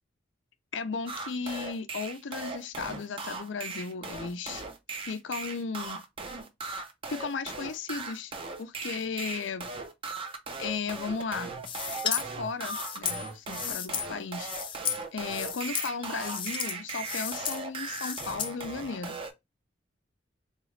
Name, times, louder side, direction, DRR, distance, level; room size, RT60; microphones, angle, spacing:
voice 1, 0.7-4.6 4.9-6.0 7.1-8.3 8.6-9.7 10.6-11.5 12.0-14.5 15.1-19.2, left 5 dB, 80° left, 0.5 m, -35 dB
sound 1, 1.1-19.3, right 3 dB, 30° right, 0.6 m, -38 dB
sound 2, 11.6-12.2 12.6-14.1 14.4-15.0 15.3-15.9 16.2-16.7 17.0-17.6 17.9-18.5, left 8 dB, 30° left, 0.4 m, -33 dB
3.8 x 2.4 x 3.1 m
head